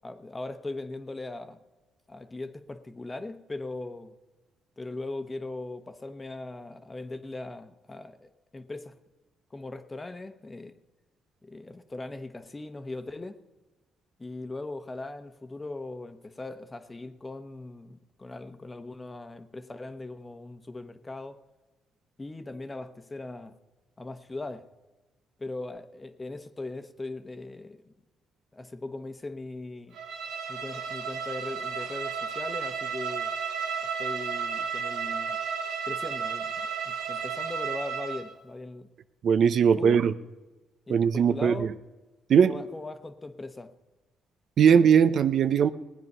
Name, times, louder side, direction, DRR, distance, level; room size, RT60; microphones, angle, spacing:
voice 1, 0.0-1.6 2.1-4.1 4.8-8.9 9.5-10.8 11.4-13.4 14.2-21.4 22.2-23.6 24.0-24.7 25.4-27.9 28.5-30.0 30.5-33.3 34.0-35.4 35.9-38.9 39.6-40.0 40.9-41.7 42.4-43.7, left 2 dB, 20° left, 10 dB, 1.0 m, -39 dB
Bowed string instrument, 29.9-38.3, right 6 dB, 85° right, 2.0 m, -33 dB
voice 2, 39.2-40.1 40.9-41.7 42.3-42.6 44.6-45.7, right 7 dB, 60° right, 12 dB, 0.6 m, -20 dB
19.0 x 9.4 x 5.5 m, 1.2 s
cardioid pair, 90°, 0 cm